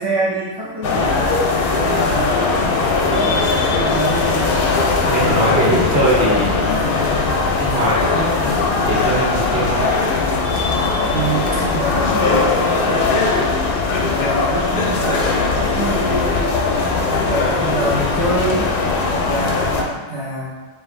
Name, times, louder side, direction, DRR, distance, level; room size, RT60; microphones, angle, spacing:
voice 1, 0.0-1.4 1.8-4.8 11.0-13.8 14.0-16.6 17.0-18.7 19.1-20.5, right 2 dB, 25° right, -7 dB, 0.7 m, -26 dB
sound 1, 0.8-19.8, left 4 dB, 65° left, 0.7 m, -19 dB
voice 2, 4.7-9.8, right 1 dB, 65° right, -6 dB, 1.3 m, -22 dB
4.9 x 2.3 x 3.2 m, 1.2 s
omnidirectional pair, 1.1 m